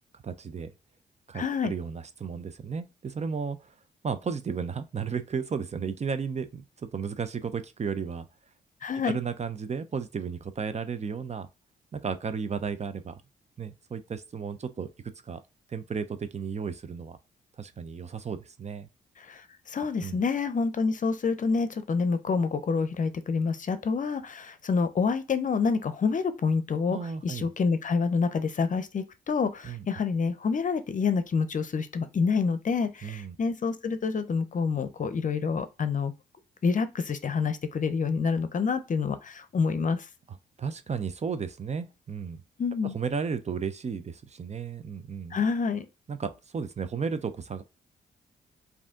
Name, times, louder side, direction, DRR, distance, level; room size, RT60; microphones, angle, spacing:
voice 1, 0.2-0.7 1.3-3.7 4.0-8.2 9.0-11.5 11.9-13.2 13.6-14.9 15.2-15.4 15.7-17.2 17.6-18.9 20.0-20.2 26.9-27.5 29.6-29.9 33.0-33.4 40.6-42.4 42.9-45.4 46.1-47.6, right 6 dB, 40° right, 0.6 m, -34 dB
voice 2, 1.3-1.7 8.8-9.2 19.2-27.0 27.2-36.1 36.6-40.1 42.6-42.9 45.3-45.9, left 5 dB, 45° left, 0.6 m, -27 dB
4.9 x 2.7 x 3.6 m
supercardioid pair, 60°, 18 cm